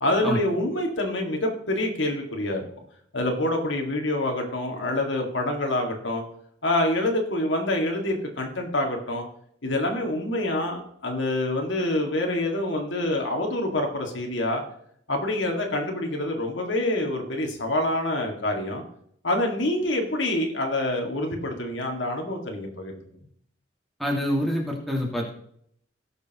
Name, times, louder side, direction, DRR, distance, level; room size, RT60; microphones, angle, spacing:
voice 1, 0.0-2.7 3.1-6.2 6.6-9.3 9.6-14.6 15.1-18.8 19.2-23.0, left 1 dB, 90° left, 1 dB, 2.1 m, -26 dB
voice 2, 24.0-25.3, equal, ahead, -2 dB, 2.0 m, -26 dB
17.5 x 6.7 x 3.0 m, 0.68 s
head